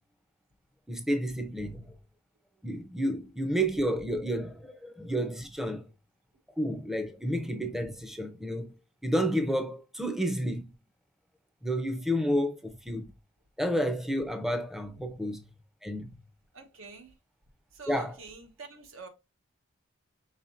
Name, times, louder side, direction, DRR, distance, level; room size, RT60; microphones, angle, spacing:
voice 1, 0.9-1.8 2.6-5.8 6.6-8.7 9.0-10.7 11.6-13.1 13.6-15.4 15.8-16.2 17.9-18.2, equal, ahead, 0.5 m, -30 dB
voice 2, 16.5-17.1 17.7-19.1, right 4 dB, 85° right, 1.1 m, -46 dB
5.6 x 3.8 x 2.4 m
head